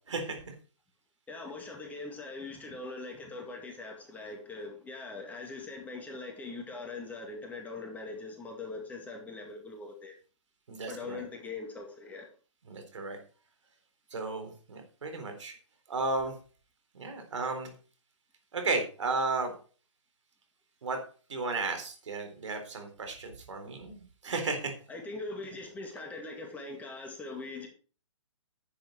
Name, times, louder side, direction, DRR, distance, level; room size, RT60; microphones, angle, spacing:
voice 1, 0.1-0.5 10.7-11.2 12.7-13.2 14.1-15.5 15.9-16.4 16.9-17.7 18.5-19.5 20.8-21.0 21.3-24.7, right 3 dB, 70° right, 3.9 m, -34 dB
voice 2, 1.3-10.1 10.9-12.3 24.9-27.7, left 3 dB, 10° left, 1.9 m, -41 dB
10.5 x 7.8 x 4.5 m
hypercardioid pair, 135°, 16 cm